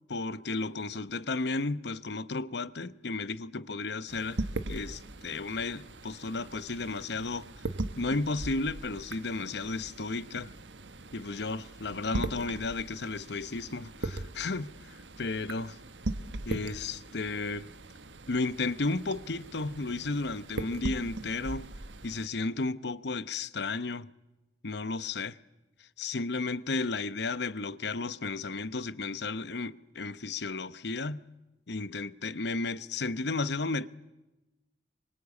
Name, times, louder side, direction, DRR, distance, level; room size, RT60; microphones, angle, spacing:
voice 1, 0.1-7.5 8.0-10.5 11.1-15.8 16.5-17.7 18.3-21.7 22.0-24.1 24.6-25.4 25.8-31.2 31.7-33.9, left 3 dB, 65° left, 0.9 m, -33 dB
sound 1, 4.1-22.3, right 2 dB, 90° right, 1.4 m, -40 dB
27.0 x 24.5 x 8.4 m
head